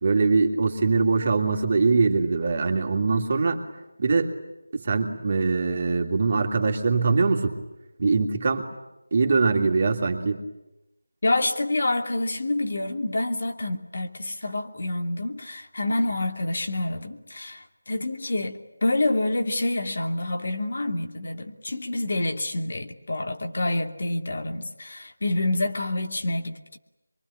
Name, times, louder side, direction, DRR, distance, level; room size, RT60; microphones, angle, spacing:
voice 1, 0.0-3.6 4.0-4.3 4.7-7.6 8.0-8.7 9.1-10.4, right 4 dB, 35° right, 2.9 m, -22 dB
voice 2, 11.2-26.8, left 2 dB, 55° left, 2.7 m, -27 dB
24.5 x 24.0 x 9.9 m
figure-of-eight pair, 170°, 0 cm